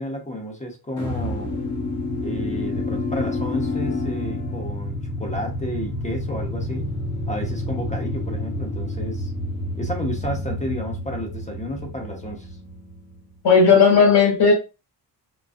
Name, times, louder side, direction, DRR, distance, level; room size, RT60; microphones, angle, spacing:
voice 1, 0.0-1.5 2.2-6.9 7.3-9.3 9.7-12.5, equal, 15° left, 1 dB, 1.0 m, -32 dB
sound 1, 1.0-13.2, left 1 dB, 45° left, 1.5 m, -29 dB
voice 2, 13.4-14.5, left 5 dB, 80° left, -4 dB, 1.9 m, -14 dB
4.0 x 2.3 x 2.5 m, 0.29 s
cardioid pair, 100°, 41 cm